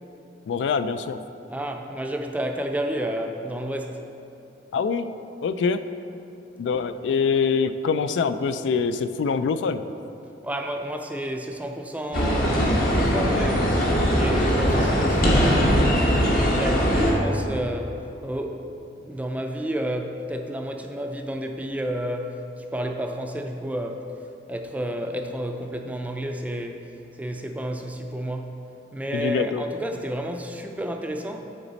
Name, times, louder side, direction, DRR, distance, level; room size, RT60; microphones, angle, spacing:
voice 1, 0.5-1.2 4.7-5.1 5.4-5.8 6.6-9.8 29.1-29.6, left 5 dB, 85° left, 11 dB, 0.3 m, -24 dB
voice 2, 1.5-4.0 10.4-13.8 14.1-15.9 16.1-18.6 19.1-24.1 24.5-26.9 27.1-28.6 28.9-31.5, equal, 10° right, 4 dB, 0.3 m, -31 dB
sound 1, 12.1-17.1, equal, 55° left, 1.0 m, -20 dB
9.8 x 4.1 x 4.0 m, 2.8 s
head